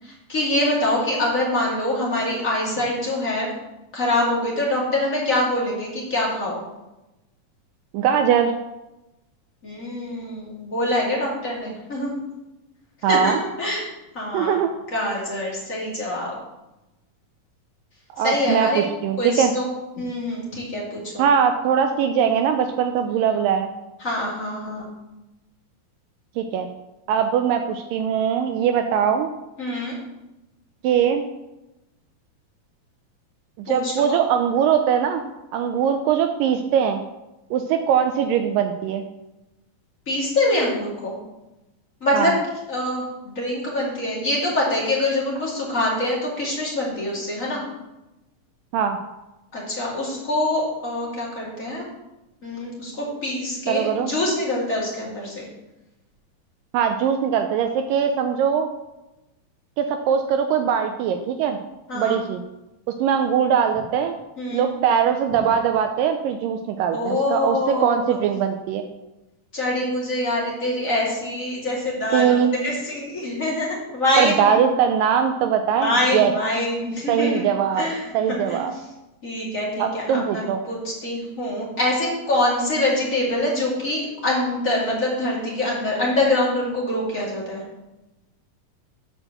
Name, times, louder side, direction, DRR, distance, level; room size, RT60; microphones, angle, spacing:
voice 1, 0.0-3.5 3.9-6.6 9.6-12.2 13.1-13.9 14.1-14.6 14.9-16.3 18.2-18.8 19.2-19.7 20.0-21.2 24.0-24.9 29.6-29.9 33.7-34.2 40.1-41.1 42.0-42.3 42.7-47.6 49.5-51.9 52.4-55.5 61.9-62.2 64.4-64.6 66.9-68.2 69.5-74.7 75.7-77.5 77.8-78.7 79.2-87.6, left 1 dB, 25° left, -4 dB, 2.1 m, -25 dB
voice 2, 7.9-8.5 13.0-13.4 14.3-14.7 18.2-19.5 21.2-23.7 26.4-26.7 27.1-29.3 30.8-31.2 33.6-35.2 35.5-37.0 37.5-39.0 42.1-42.3 48.7-49.0 53.7-54.1 56.7-58.7 59.8-61.6 61.9-62.4 63.0-64.1 64.5-68.9 72.1-72.6 74.2-76.3 77.1-77.9 78.1-78.7 79.8-80.6, right 8 dB, 80° right, 6 dB, 2.1 m, -21 dB
9.9 x 4.5 x 6.5 m, 0.99 s
omnidirectional pair, 4.1 m